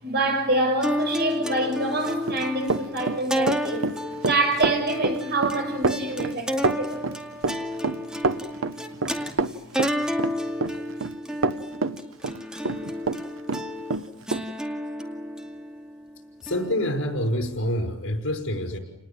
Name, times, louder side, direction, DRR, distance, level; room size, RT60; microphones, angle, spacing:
voice 1, 0.0-3.8 4.2-7.1, right 2 dB, 55° right, 4 dB, 6.9 m, -26 dB
sound 1, 0.8-17.3, equal, 5° right, 2.3 m, -31 dB
Run, 2.0-13.2 13.5-14.4, right 3 dB, 90° right, 1.0 m, -27 dB
voice 2, 16.4-18.8, equal, 85° left, 5 dB, 5.8 m, -27 dB
29.5 x 20.0 x 9.0 m, 0.95 s
head